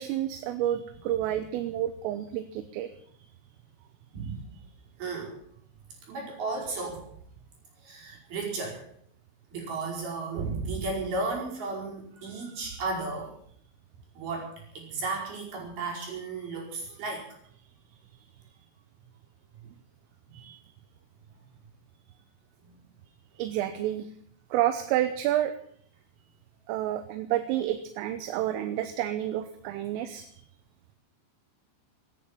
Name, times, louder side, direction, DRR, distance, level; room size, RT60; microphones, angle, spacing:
voice 1, 0.0-2.9 20.3-20.6 23.4-24.1 24.5-25.5 26.7-30.3, right 12 dB, 80° right, 10 dB, 3.5 m, -29 dB
voice 2, 4.1-4.5 5.0-5.4 6.1-7.0 7.8-8.9 9.5-13.4 14.2-17.3 22.6-22.8, right 3 dB, 50° right, -1 dB, 6.8 m, -34 dB
15.0 x 11.0 x 8.7 m, 0.64 s
omnidirectional pair, 5.9 m